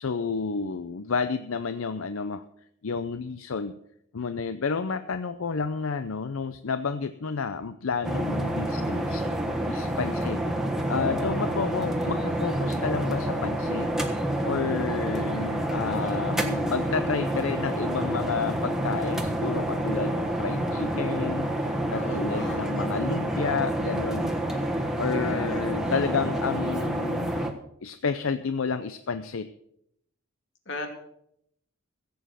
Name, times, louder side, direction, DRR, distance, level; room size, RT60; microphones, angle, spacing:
voice 1, 0.0-2.4 2.8-3.7 4.1-9.3 9.6-10.4 10.9-13.9 14.4-24.3 25.0-27.5 27.8-29.5, left 5 dB, 80° left, 11 dB, 0.6 m, -30 dB
sound 1, 8.0-27.5, right 1 dB, 5° right, 1.3 m, -28 dB
voice 2, 10.0-10.3 21.9-22.6 25.1-25.5 30.7-30.9, left 2 dB, 60° left, 4 dB, 2.7 m, -37 dB
16.0 x 7.9 x 6.6 m, 0.74 s
head